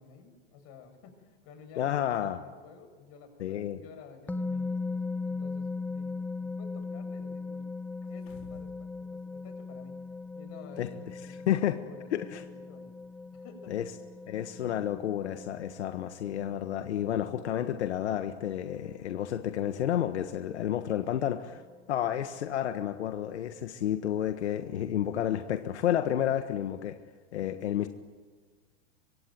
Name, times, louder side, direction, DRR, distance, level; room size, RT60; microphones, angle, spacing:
voice 1, 0.0-7.7 8.1-10.0 10.3-13.0 13.2-13.9, left 5 dB, 45° left, 6 dB, 7.1 m, -52 dB
voice 2, 1.8-2.4 3.4-3.8 10.8-10.9 11.5-11.8 12.1-12.4 13.7-13.8 14.3-21.6 21.9-27.0 27.3-27.9, left 11 dB, 90° left, 7 dB, 1.6 m, -30 dB
sound 1, 4.3-23.6, left 3 dB, 5° left, 1.0 m, -40 dB
sound 2, 8.0-8.9 9.2-9.3, left 6 dB, 65° left, 4.9 m, -52 dB
25.0 x 24.0 x 9.2 m, 1.4 s
supercardioid pair, 135°, 33 cm